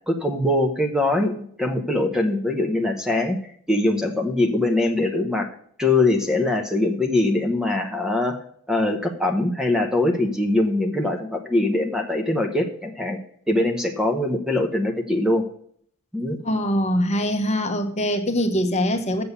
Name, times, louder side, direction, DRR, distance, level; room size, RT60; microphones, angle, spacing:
voice 1, 0.1-3.4 3.7-5.5 5.8-8.4 8.7-13.2 13.5-15.4 16.1-16.4, left 2 dB, 5° right, 0.9 m, -22 dB
voice 2, 16.4-19.2, equal, 30° left, 1.0 m, -23 dB
7.8 x 6.9 x 8.1 m
head